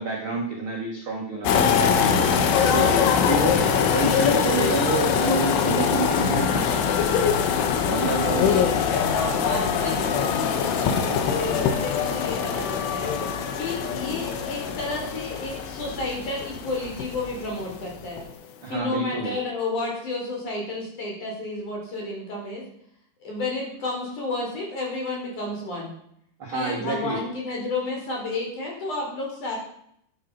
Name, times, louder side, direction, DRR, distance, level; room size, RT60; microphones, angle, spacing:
voice 1, 0.0-2.3 2.7-3.6 3.9-7.1 7.9-8.6 18.6-19.4 26.4-27.2, right 3 dB, 45° right, -1 dB, 1.8 m, -28 dB
sound 1, 1.5-17.7 18.0-18.3, left 7 dB, 90° left, 3.8 m, -23 dB
voice 2, 7.9-18.2 18.7-22.6 23.2-25.9 26.5-29.6, left 2 dB, 45° left, -1 dB, 5.5 m, -32 dB
12.5 x 11.0 x 5.7 m, 0.69 s
omnidirectional pair, 5.4 m